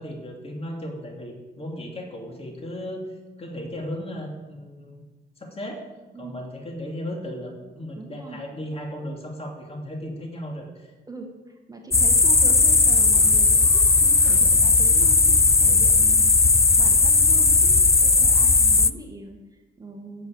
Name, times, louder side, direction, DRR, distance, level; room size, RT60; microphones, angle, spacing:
voice 1, 0.0-3.1 3.4-5.0 5.4-5.8 6.1-10.9, equal, 30° left, 1 dB, 2.8 m, -35 dB
voice 2, 7.9-8.4 11.1-16.3 16.8-20.3, right 1 dB, 20° right, 2 dB, 1.5 m, -41 dB
sound 1, 11.9-18.9, left 3 dB, 15° left, 0.3 m, -17 dB
10.0 x 7.6 x 7.2 m, 1.2 s
cardioid pair, 90°, 20 cm